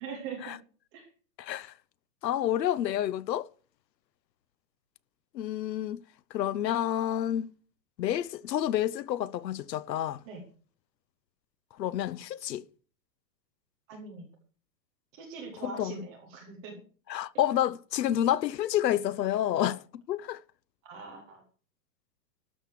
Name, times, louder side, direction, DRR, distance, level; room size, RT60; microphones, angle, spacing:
voice 1, 0.0-0.6 0.9-1.1 10.3-10.4 13.9-14.3 15.1-16.8 20.8-21.4, right 5 dB, 5° right, 0.5 m, -42 dB
voice 2, 1.4-1.7 2.2-3.5 5.3-6.0 6.3-7.5 8.0-10.2 11.8-12.6 15.6-16.0 17.1-20.4, left 11 dB, 80° left, 0.8 m, -29 dB
13.0 x 6.4 x 7.5 m
hypercardioid pair, 165°, 50 cm